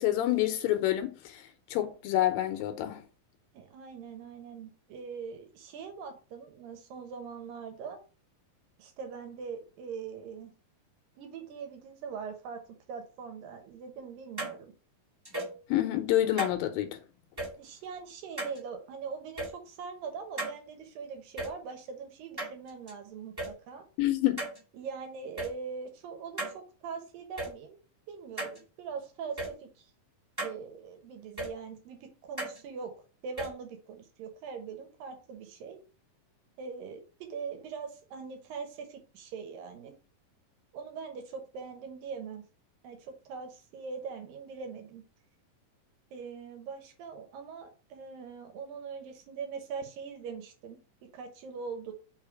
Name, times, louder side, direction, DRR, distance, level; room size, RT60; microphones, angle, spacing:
voice 1, 0.0-1.4 1.7-3.0 15.7-17.0 24.0-24.4, left 13 dB, 80° left, 2.4 m, -27 dB
voice 2, 3.5-8.0 8.8-10.5 11.2-12.6 12.9-14.7 17.4-23.9 24.7-27.8 28.1-29.9 30.4-32.9 33.2-35.8 36.6-39.9 40.7-42.4 42.8-45.0 46.1-50.8 51.1-51.9, right 5 dB, 75° right, 2.7 m, -42 dB
sound 1, 14.4-14.5 15.2-15.6 16.4-16.5 17.4-17.5 18.4-18.6 19.4-19.5 20.4-20.5 21.4-21.5 22.4-22.9 23.4-23.5 24.4-24.6 25.4-25.5 26.4-26.5 27.4-27.5 28.4-28.6 29.4-29.5 30.4-30.5 31.4-31.5 32.4-32.6 33.4-33.5, right 2 dB, 15° right, 0.8 m, -35 dB
5.6 x 3.6 x 4.6 m
omnidirectional pair, 4.1 m